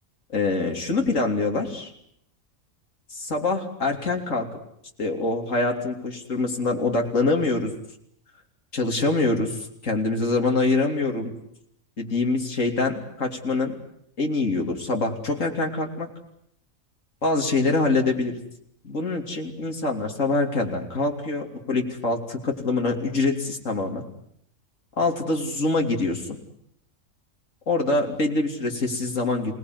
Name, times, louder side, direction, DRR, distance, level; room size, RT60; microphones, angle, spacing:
voice 1, 0.3-1.9 3.1-4.5 5.0-7.7 8.7-11.3 12.0-13.8 14.2-16.1 17.2-18.4 18.8-24.0 25.0-26.4 27.7-29.6, left 3 dB, 70° left, 2 dB, 3.7 m, -25 dB
27.5 x 19.0 x 9.7 m, 0.72 s
omnidirectional pair, 1.4 m